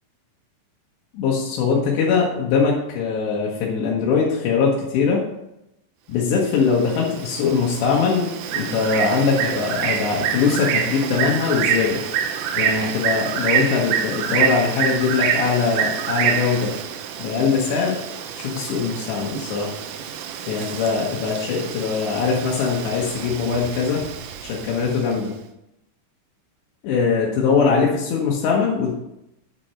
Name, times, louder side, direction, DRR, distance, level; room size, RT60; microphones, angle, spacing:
voice 1, 1.1-5.2 6.1-12.0 12.6-16.7 17.2-18.0 18.3-19.7 20.5-24.1 24.4-25.3 26.8-28.9, left 5 dB, 70° left, -4 dB, 3.2 m, -21 dB
Bird, 6.4-25.2, right 8 dB, 90° right, 3.5 m, -27 dB
8.7 x 6.2 x 5.7 m, 0.85 s
omnidirectional pair, 5.6 m